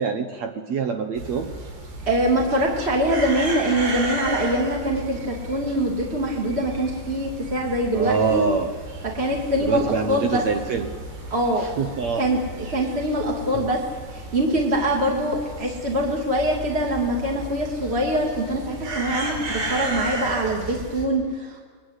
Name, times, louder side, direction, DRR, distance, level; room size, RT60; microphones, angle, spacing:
voice 1, 0.0-1.5 7.9-8.7 9.6-10.9 11.6-12.3 13.5-13.7, right 5 dB, 85° right, 6 dB, 1.5 m, -25 dB
sound 1, 1.2-21.0, right 2 dB, 70° right, 6.3 m, -34 dB
voice 2, 2.1-8.4 9.1-10.4 11.3-11.6 12.2-12.4 12.7-13.8 14.1-21.6, right 1 dB, 20° right, -1 dB, 1.9 m, -24 dB
29.5 x 21.5 x 8.2 m, 1.5 s
omnidirectional pair, 4.9 m